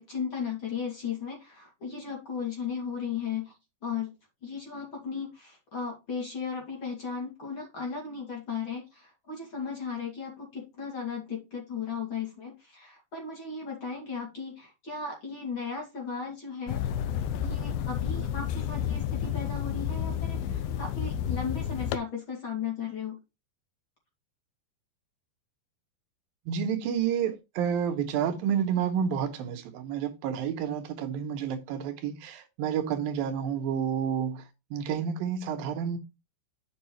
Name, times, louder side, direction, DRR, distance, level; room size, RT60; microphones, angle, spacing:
voice 1, 0.0-3.5 3.8-4.1 4.4-16.8 17.4-23.2, left 6 dB, 40° left, 2.6 m, -36 dB
sound 1, 16.7-22.0, left 9 dB, 90° left, 2.5 m, -31 dB
voice 2, 26.5-34.4 34.7-36.0, right 8 dB, 80° right, 2.6 m, -30 dB
9.1 x 5.5 x 3.0 m
omnidirectional pair, 4.2 m